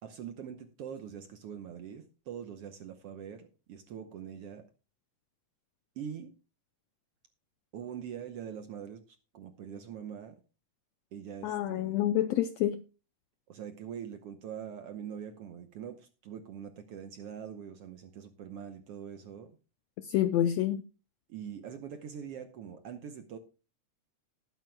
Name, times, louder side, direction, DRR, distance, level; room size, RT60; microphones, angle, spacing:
voice 1, 0.0-4.6 6.0-6.3 7.7-9.0 9.3-10.4 11.1-12.0 13.5-19.5 21.3-23.4, right 8 dB, 65° right, 1.6 m, -43 dB
voice 2, 11.4-12.8 20.0-20.8, left 12 dB, 80° left, 1.5 m, -28 dB
19.0 x 9.2 x 2.2 m
omnidirectional pair, 3.6 m